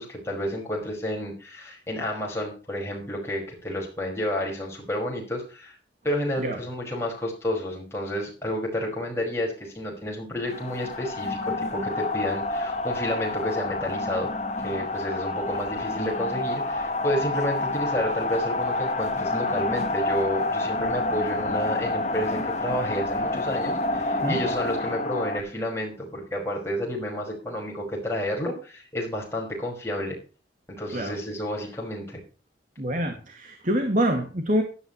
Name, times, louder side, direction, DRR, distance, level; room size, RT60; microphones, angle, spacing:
voice 1, 0.0-5.8 6.0-14.3 14.6-30.2 30.7-32.2, equal, 15° left, -1 dB, 5.3 m, -30 dB
sound 1, 10.4-25.4, left 2 dB, 40° left, 1.4 m, -28 dB
voice 2, 32.8-34.6, equal, 45° right, 5 dB, 2.0 m, -26 dB
16.5 x 12.0 x 3.1 m, 0.36 s
head